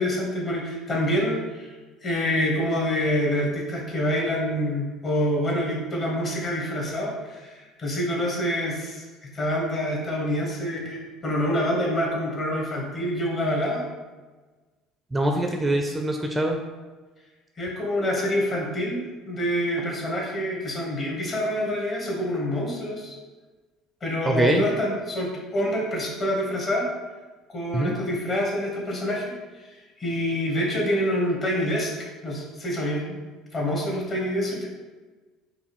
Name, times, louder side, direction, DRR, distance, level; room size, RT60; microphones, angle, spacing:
voice 1, 0.0-1.7 2.0-13.8 17.6-23.2 24.0-26.9 27.5-29.2 29.7-31.9 32.2-33.3 33.5-34.7, equal, 40° left, -2 dB, 1.4 m, -26 dB
voice 2, 15.1-16.6 24.2-24.6 27.7-27.9, right 1 dB, 15° right, 3 dB, 0.4 m, -23 dB
4.6 x 2.6 x 3.1 m, 1.3 s
hypercardioid pair, 60°, 0 cm